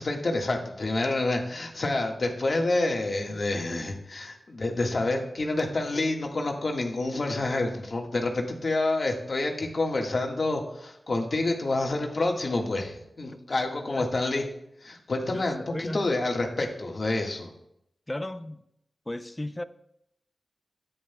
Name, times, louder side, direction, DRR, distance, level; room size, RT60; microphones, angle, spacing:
voice 1, 0.0-14.4 14.8-17.5, left 2 dB, 60° left, 1 dB, 1.7 m, -28 dB
voice 2, 13.5-14.1 15.3-16.0 18.1-18.6 19.1-19.6, left 1 dB, 20° left, 12 dB, 0.6 m, -36 dB
13.0 x 10.0 x 2.3 m, 0.78 s
cardioid pair, 55°, 0 cm